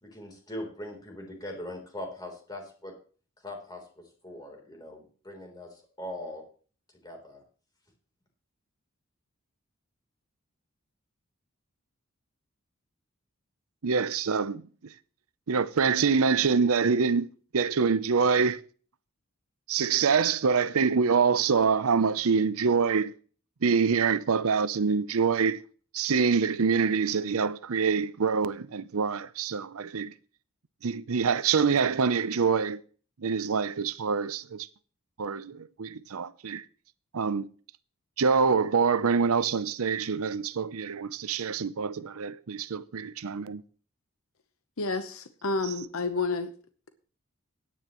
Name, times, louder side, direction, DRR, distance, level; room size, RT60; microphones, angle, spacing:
voice 1, 0.0-2.9 3.4-6.4 7.0-7.4, left 1 dB, 20° left, 3.6 m, -41 dB
voice 2, 13.8-14.6 15.5-17.3 17.5-18.6 19.7-23.1 23.6-25.6 25.9-30.1 30.8-32.8 33.2-34.7 35.2-36.6 37.1-37.5 38.2-43.6, right 5 dB, 85° right, 0.6 m, -25 dB
voice 3, 44.8-46.5, left 3 dB, 75° left, 0.9 m, -30 dB
16.5 x 10.0 x 3.1 m
head